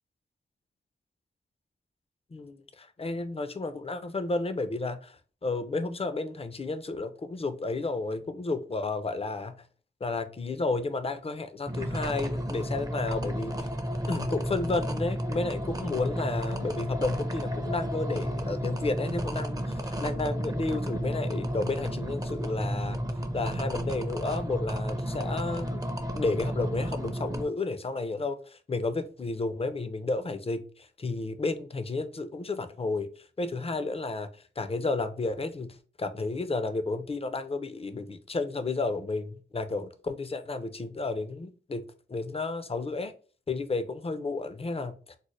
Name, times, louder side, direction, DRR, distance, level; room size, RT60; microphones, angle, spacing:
voice 1, 2.3-5.2 5.4-9.5 10.0-13.5 14.1-23.0 23.3-25.8 26.1-33.1 33.4-34.3 34.6-41.8 42.1-43.1 43.5-44.9, left 3 dB, 30° left, 0.5 m, -32 dB
sound 1, 11.7-27.5, equal, 20° right, 0.5 m, -32 dB
4.0 x 2.0 x 3.1 m
cardioid pair, 50°, 20 cm